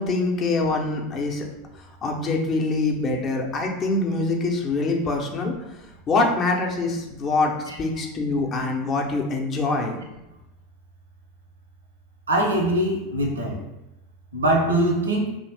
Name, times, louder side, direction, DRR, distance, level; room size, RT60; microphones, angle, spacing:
voice 1, 0.0-1.5 2.0-5.5 6.1-7.5 7.8-10.0, left 3 dB, 35° left, 1 dB, 0.5 m, -24 dB
voice 2, 12.3-13.6 14.3-15.4, right 1 dB, 85° right, 1 dB, 0.5 m, -22 dB
2.5 x 2.0 x 3.3 m, 0.94 s
figure-of-eight pair, 85°, 0 cm